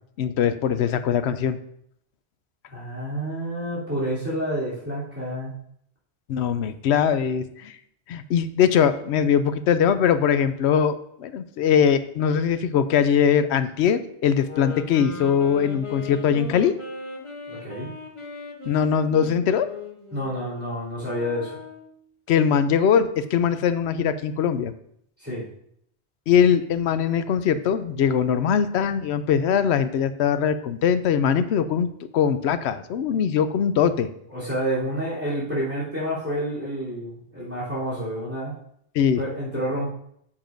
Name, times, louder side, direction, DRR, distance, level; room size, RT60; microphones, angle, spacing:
voice 1, 0.2-1.6 6.3-7.7 8.1-16.7 18.7-19.7 22.3-24.7 26.3-31.9 32.1-34.1 38.9-39.2, left 8 dB, 85° left, 12 dB, 0.9 m, -21 dB
voice 2, 2.7-5.5 17.5-17.9 20.1-21.6 25.2-25.4 34.3-38.5 39.2-39.9, equal, 10° right, -9 dB, 3.2 m, -29 dB
sound 1, 14.4-22.0, left 4 dB, 30° left, 1.0 m, -38 dB
9.6 x 7.3 x 2.6 m, 0.69 s
omnidirectional pair, 1.1 m